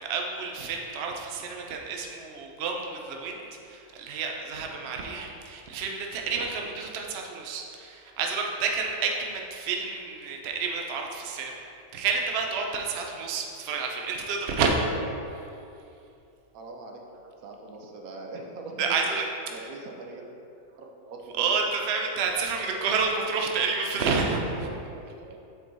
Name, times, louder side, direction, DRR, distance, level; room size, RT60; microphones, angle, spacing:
voice 1, 0.0-11.6 11.9-14.8 18.8-19.2 19.6-19.7 21.3-24.7, right 5 dB, 55° right, 1 dB, 0.8 m, -29 dB
voice 2, 16.5-19.0 19.5-20.2 20.7-21.7 25.0-25.4, right 3 dB, 80° right, 1 dB, 1.2 m, -42 dB
7.4 x 4.5 x 4.0 m, 2.7 s
omnidirectional pair, 1.5 m